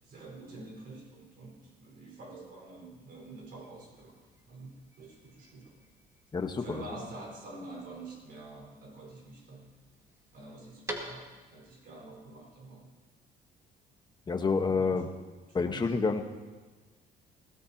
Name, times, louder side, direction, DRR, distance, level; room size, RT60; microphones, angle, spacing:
voice 1, 0.0-5.8 6.6-9.8 10.3-12.9 14.7-14.9 15.5-15.8 16.1-16.2, right 2 dB, 60° right, -1 dB, 4.9 m, -47 dB
sound 1, 3.2-11.7, right 1 dB, 15° right, 2.2 m, -49 dB
voice 2, 6.3-6.9 14.3-15.1 15.5-16.2, left 4 dB, 25° left, 5 dB, 1.3 m, -28 dB
20.0 x 17.0 x 2.9 m, 1.4 s
cardioid pair, 110°, 17 cm